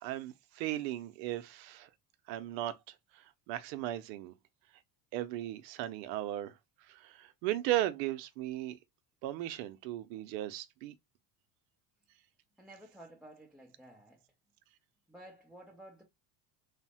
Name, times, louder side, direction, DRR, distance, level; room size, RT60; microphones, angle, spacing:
voice 1, 0.0-1.9 2.3-2.8 3.1-4.3 5.1-6.5 6.9-8.8 9.2-10.9, right 14 dB, 85° right, 0.6 m, -36 dB
voice 2, 12.6-14.2 15.1-16.0, right 1 dB, ahead, 0.5 m, -53 dB
3.2 x 2.1 x 2.7 m
supercardioid pair, 105°, 49 cm